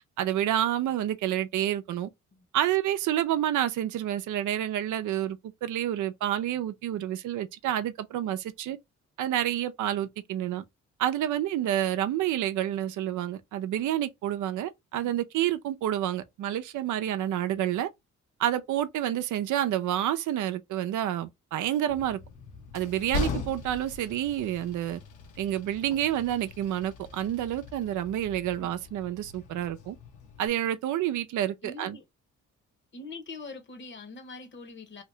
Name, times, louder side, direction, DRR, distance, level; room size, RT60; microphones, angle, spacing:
voice 1, 0.2-2.1 2.5-8.8 9.2-10.6 11.0-17.9 18.4-22.2 22.7-25.0 25.4-30.0 30.4-32.0, right 12 dB, 75° right, 0.6 m, -29 dB
Train, 21.9-30.5, left 4 dB, 85° left, 0.8 m, -40 dB
voice 2, 31.6-32.0 32.9-35.0, left 3 dB, 40° left, 1.0 m, -43 dB
2.9 x 2.8 x 3.1 m
cardioid pair, 90°, 30 cm